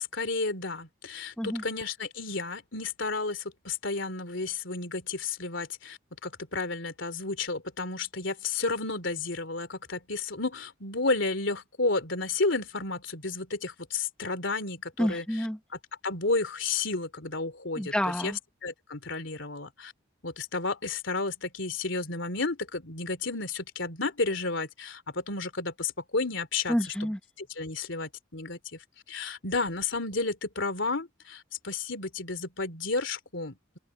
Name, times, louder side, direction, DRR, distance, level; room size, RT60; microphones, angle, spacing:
voice 1, 0.0-15.2 16.0-17.9 18.2-18.3 18.6-19.9 20.2-26.8 27.4-28.6 29.1-33.8, left 3 dB, 65° left, 3.6 m, -32 dB
voice 2, 15.0-15.6 17.8-18.4 26.7-27.2, equal, 5° left, 1.5 m, -28 dB
open air
head